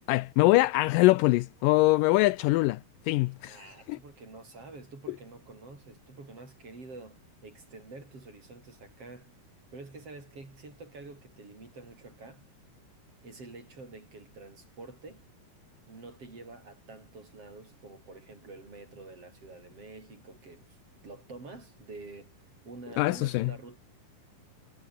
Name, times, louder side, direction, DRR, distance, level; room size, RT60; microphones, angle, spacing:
voice 1, 0.1-3.6 3.9-4.0 23.0-23.5, left 20 dB, 80° left, 2.0 m, -23 dB
voice 2, 3.4-9.3 9.7-12.4 13.2-15.3 15.9-20.8 21.0-23.8, right 3 dB, 40° right, 7.2 m, -48 dB
omnidirectional pair, 4.1 m